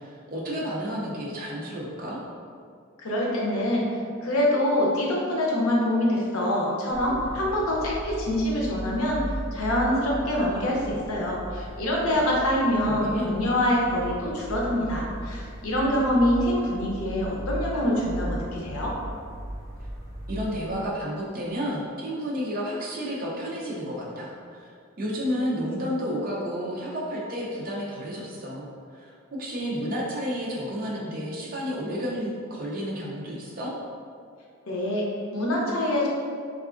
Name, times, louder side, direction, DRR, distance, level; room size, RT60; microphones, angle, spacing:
voice 1, 0.0-2.2 12.9-13.3 20.3-24.7 25.0-33.7, equal, 40° right, -4 dB, 0.5 m, -31 dB
voice 2, 3.0-3.9 4.2-9.2 9.5-18.9 34.7-36.1, left 1 dB, 80° left, -3 dB, 0.6 m, -25 dB
sound 1, 6.9-20.8, equal, 50° left, 1.2 m, -37 dB
3.4 x 2.4 x 2.4 m, 2.2 s
head